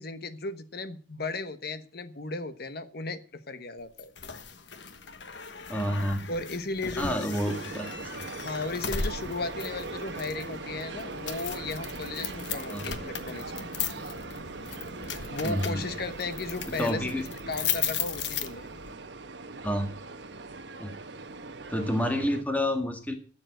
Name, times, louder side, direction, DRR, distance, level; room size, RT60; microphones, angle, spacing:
voice 1, 0.0-4.1 6.3-7.6 8.4-13.7 15.0-18.7, left 3 dB, 60° left, 11 dB, 1.2 m, -36 dB
Front door open close lock, 4.0-18.9, left 7 dB, 75° left, 1.3 m, -37 dB
voice 2, 5.7-6.2 7.0-7.9 8.1-8.2 12.7-12.9 15.4-15.9 16.7-17.2 19.6-19.9 20.8-20.9 21.7-23.1, left 1 dB, 10° left, 5 dB, 1.7 m, -29 dB
sound 1, 7.3-22.4, right 3 dB, 70° right, 1.1 m, -41 dB
12.5 x 7.3 x 7.9 m, 0.41 s
head